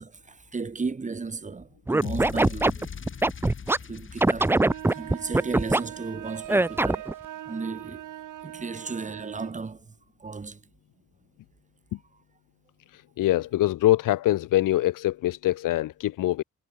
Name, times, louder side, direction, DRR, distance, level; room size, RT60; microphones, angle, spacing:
voice 1, 0.0-2.9 3.8-7.2 7.4-8.1 8.4-10.6, right 4 dB, 25° right, 5.3 m, -35 dB
Scratching (performance technique), 1.9-3.8 4.2-5.8 6.5-7.1, right 2 dB, 5° right, 0.5 m, -21 dB
sound 1, 2.0-6.3, left 6 dB, 40° left, 7.6 m, -40 dB
sound 2, 4.6-9.6, right 12 dB, 75° right, 2.2 m, -41 dB
voice 2, 13.2-16.4, left 15 dB, 90° left, 1.2 m, -23 dB
cardioid pair, 145°, 31 cm